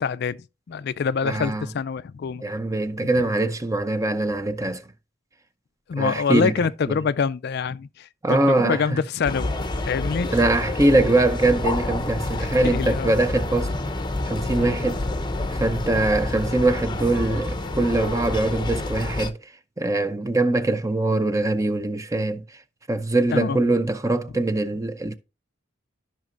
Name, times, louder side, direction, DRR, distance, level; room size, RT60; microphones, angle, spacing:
voice 1, 0.0-2.4 3.0-3.1 5.9-10.4 12.4-13.1 14.6-14.8 23.3-23.6, left 5 dB, 50° left, 0.3 m, -26 dB
voice 2, 1.2-1.7 2.4-4.8 6.0-6.5 8.2-9.0 10.3-13.7 14.2-15.0 15.5-19.4 19.8-22.4 22.9-25.2, right 2 dB, 15° right, 0.6 m, -22 dB
sound 1, 9.2-19.3, left 2 dB, 20° left, 0.7 m, -28 dB
13.5 x 5.8 x 2.5 m
head